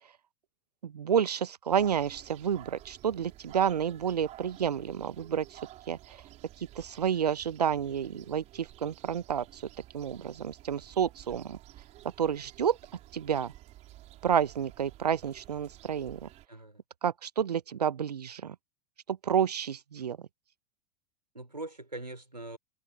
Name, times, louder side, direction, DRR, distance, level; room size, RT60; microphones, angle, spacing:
voice 1, 0.8-5.6 5.9-6.0 6.6-9.6 9.9-11.6 12.2-12.8 13.1-13.5 14.2-16.3 17.0-18.6 19.1-20.2, right 8 dB, 70° right, 0.9 m, -30 dB
sound 1, 1.7-16.5, right 14 dB, 35° right, 4.6 m, -52 dB
voice 2, 16.5-16.8 21.3-22.6, right 2 dB, 85° right, 4.7 m, -42 dB
figure-of-eight pair, 90°, 21 cm